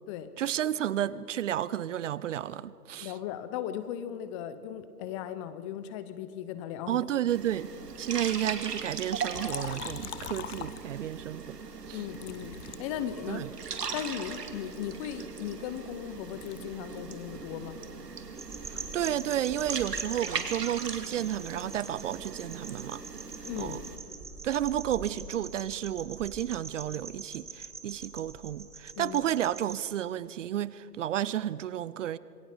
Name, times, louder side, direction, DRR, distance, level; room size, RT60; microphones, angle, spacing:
voice 1, 0.4-3.1 6.9-7.7 8.0-11.6 11.9-12.0 13.3-13.5 18.9-23.0 23.6-23.8 24.4-32.2, right 11 dB, 50° right, 19 dB, 0.6 m, -31 dB
voice 2, 3.0-7.0 11.9-13.5 13.9-17.8 23.4-23.9 28.9-29.2, left 10 dB, 20° left, 12 dB, 0.7 m, -37 dB
sound 1, 7.3-24.0, right 5 dB, 85° right, 2.4 m, -40 dB
Liquid, 9.3-11.3 12.1-13.7 14.3-16.0 16.3-20.0 20.2-21.9, left 10 dB, 45° left, 1.2 m, -45 dB
sound 2, 18.4-29.8, right 4 dB, 5° right, 1.1 m, -43 dB
26.5 x 21.5 x 5.0 m, 2.6 s
hypercardioid pair, 135°, 47 cm